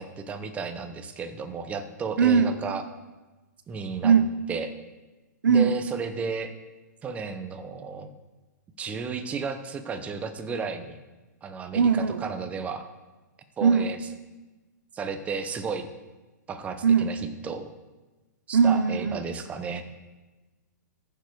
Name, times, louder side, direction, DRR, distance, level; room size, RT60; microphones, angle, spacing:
voice 1, 0.0-2.8 3.7-4.1 4.5-4.7 5.5-6.5 7.0-8.1 8.8-11.0 11.4-12.9 13.6-14.0 14.9-15.9 16.5-17.7 18.5-19.8, right 5 dB, 15° right, 9 dB, 0.8 m, -33 dB
voice 2, 2.2-2.6 4.0-4.3 5.4-5.8 11.7-12.2 13.6-13.9 16.8-17.1 18.5-19.2, right 6 dB, 90° right, 12 dB, 0.8 m, -20 dB
14.5 x 7.0 x 4.6 m, 1.2 s
hypercardioid pair, 155°, 10 cm